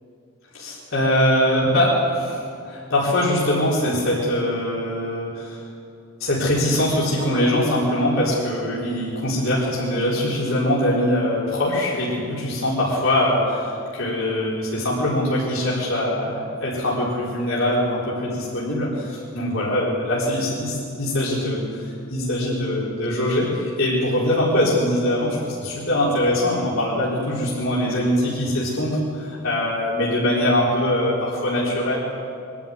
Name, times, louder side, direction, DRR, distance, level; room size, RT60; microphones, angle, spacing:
voice 1, 0.5-5.6 6.2-32.0, left 1 dB, 70° left, -7 dB, 4.3 m, -22 dB
24.0 x 12.0 x 9.5 m, 2.5 s
head